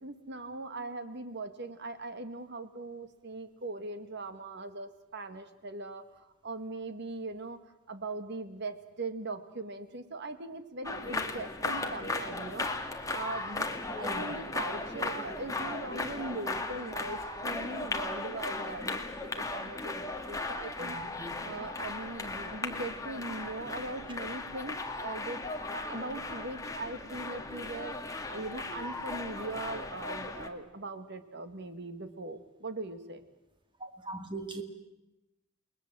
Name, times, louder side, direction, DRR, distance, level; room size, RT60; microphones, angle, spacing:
voice 1, 0.0-7.6 7.9-12.7 13.1-21.0 21.4-25.5 25.7-33.3, right 2 dB, 55° right, 10 dB, 1.8 m, -40 dB
sound 1, 10.8-30.5, left 2 dB, 15° left, 1.9 m, -37 dB
voice 2, 13.9-14.3 20.8-21.3 24.1-24.2 33.8-34.6, right 2 dB, 25° right, 5 dB, 2.6 m, -40 dB
29.5 x 20.5 x 7.6 m, 0.95 s
head